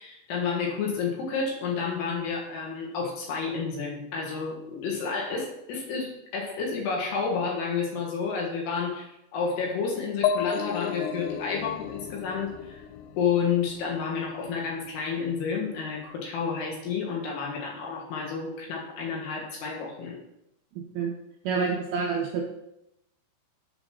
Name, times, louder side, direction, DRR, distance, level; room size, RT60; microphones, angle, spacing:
voice 1, 0.0-9.1 9.3-12.8 13.2-20.2, left 5 dB, 70° left, -2 dB, 3.3 m, -30 dB
sound 1, 10.2-13.9, left 7 dB, 85° left, 2.4 m, -32 dB
voice 2, 21.4-22.4, right 5 dB, 80° right, -1 dB, 2.2 m, -27 dB
7.2 x 5.1 x 6.2 m, 0.85 s
omnidirectional pair, 5.3 m